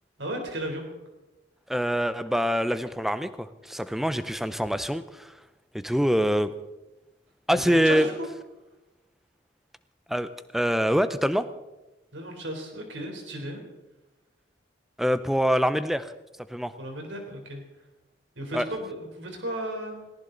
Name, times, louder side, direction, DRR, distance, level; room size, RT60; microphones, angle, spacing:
voice 1, 0.2-0.9 7.5-8.3 12.1-13.6 16.8-17.6 18.4-20.0, right 1 dB, 80° right, 3 dB, 3.7 m, -34 dB
voice 2, 1.7-5.3 5.7-6.5 7.5-8.1 10.1-11.5 15.0-16.1 16.5-16.7 18.5-18.7, equal, ahead, 12 dB, 0.6 m, -25 dB
18.5 x 18.5 x 4.0 m, 1.0 s
head